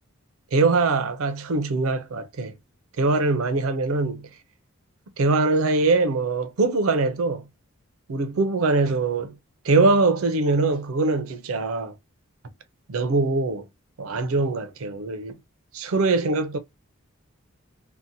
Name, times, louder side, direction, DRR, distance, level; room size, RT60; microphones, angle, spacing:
voice 1, 0.5-2.5 3.0-4.3 5.2-7.4 8.1-9.3 9.6-11.9 12.9-13.7 14.0-15.4 15.7-16.6, right 3 dB, 75° right, 0.5 m, -22 dB
2.7 x 2.1 x 2.5 m
head